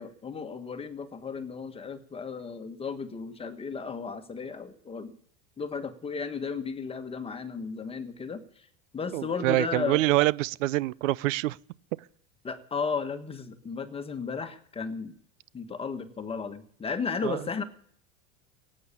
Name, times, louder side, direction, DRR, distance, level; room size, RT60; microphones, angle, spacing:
voice 1, 0.0-5.1 5.6-8.7 8.9-10.0 12.4-15.1 15.5-17.6, left 5 dB, 15° left, 1.4 m, -34 dB
voice 2, 9.1-11.6 17.2-17.4, right 17 dB, 90° right, 0.6 m, -25 dB
17.5 x 8.8 x 8.5 m
supercardioid pair, 145°, 37 cm